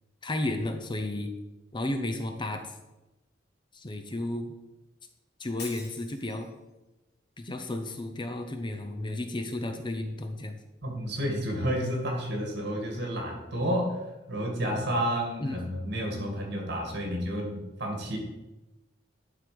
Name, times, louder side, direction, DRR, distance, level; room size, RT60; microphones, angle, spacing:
voice 1, 0.2-1.3 1.7-2.7 3.7-4.5 5.4-6.5 7.4-10.6 15.4-15.6, left 1 dB, 25° left, 6 dB, 0.7 m, -33 dB
Shatter, 5.6-6.6, left 4 dB, 65° left, 2.1 m, -44 dB
voice 2, 10.8-14.0 14.3-18.2, equal, 65° right, 1 dB, 2.0 m, -30 dB
11.0 x 3.8 x 5.0 m, 1.0 s
head